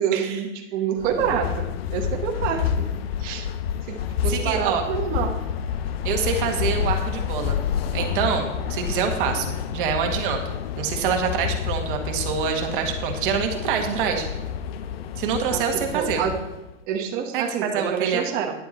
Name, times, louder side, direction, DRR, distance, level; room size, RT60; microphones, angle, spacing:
voice 1, 0.0-1.6 1.9-2.9 3.2-3.5 3.9-5.3 14.1-14.2 15.5-16.3 16.9-18.5, right 8 dB, 25° right, 2 dB, 1.1 m, -27 dB
sound 1, 1.0-16.7, left 8 dB, 50° left, 0.6 m, -29 dB
voice 2, 4.3-4.8 6.0-7.6 7.9-14.3 15.2-16.2 17.3-18.3, right 7 dB, 40° right, 4 dB, 1.6 m, -26 dB
10.5 x 7.8 x 4.2 m, 0.94 s
hypercardioid pair, 155°, 38 cm